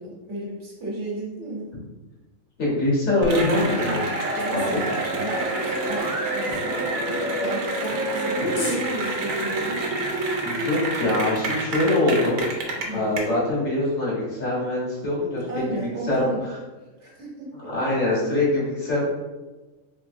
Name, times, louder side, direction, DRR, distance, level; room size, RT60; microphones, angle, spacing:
voice 1, 0.0-1.7 4.3-9.9 12.9-13.1 15.5-16.4 17.0-17.7, right 1 dB, 60° right, -4 dB, 1.3 m, -33 dB
voice 2, 2.6-4.0 4.5-4.6 6.5-6.6 10.4-12.4 12.9-16.3 17.5-19.0, left 2 dB, 75° left, -6 dB, 1.8 m, -23 dB
Cheering / Applause, 3.2-13.2, right 2 dB, 85° right, 1.1 m, -27 dB
sound 1, 7.6-11.9, left 2 dB, 40° left, 0.7 m, -42 dB
3.8 x 3.2 x 2.6 m, 1.2 s
omnidirectional pair, 1.4 m